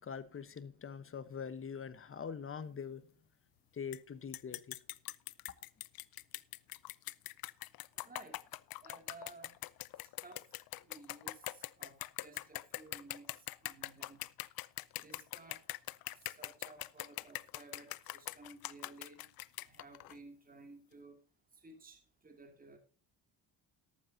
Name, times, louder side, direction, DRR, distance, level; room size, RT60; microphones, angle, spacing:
voice 1, 0.0-3.1 3.7-4.7, left 6 dB, 30° left, 1.1 m, -43 dB
sound 1, 3.9-4.0 4.3-20.2, left 17 dB, 60° left, 0.6 m, -43 dB
voice 2, 7.9-8.4 8.8-9.5 10.0-10.5 10.9-13.3 13.6-14.2 15.0-15.6 16.2-19.3 19.6-21.2 21.6-22.8, right 3 dB, 20° right, 2.6 m, -55 dB
14.0 x 12.0 x 2.8 m
cardioid pair, 95°, 42 cm